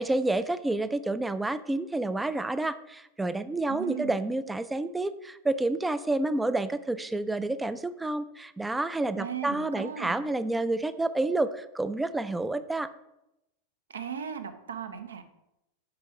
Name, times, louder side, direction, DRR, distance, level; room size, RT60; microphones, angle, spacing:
voice 1, 0.0-12.9, right 2 dB, 5° right, 13 dB, 0.3 m, -29 dB
voice 2, 3.7-4.2 9.1-10.2 13.9-15.2, right 8 dB, 70° right, 9 dB, 0.6 m, -37 dB
4.9 x 4.8 x 4.6 m, 0.90 s
figure-of-eight pair, 90°, 0 cm